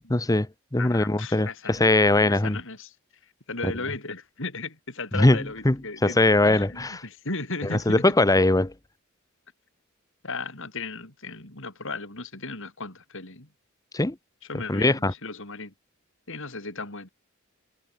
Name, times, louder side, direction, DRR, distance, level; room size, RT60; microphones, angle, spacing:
voice 1, 0.1-2.6 3.6-3.7 5.1-7.0 7.6-8.7 13.9-14.2 14.7-15.1, left 2 dB, 15° left, 0.9 m, -21 dB
voice 2, 0.8-2.9 3.5-8.0 10.2-13.5 14.5-15.7 16.3-17.1, left 3 dB, 65° left, 6.3 m, -36 dB
head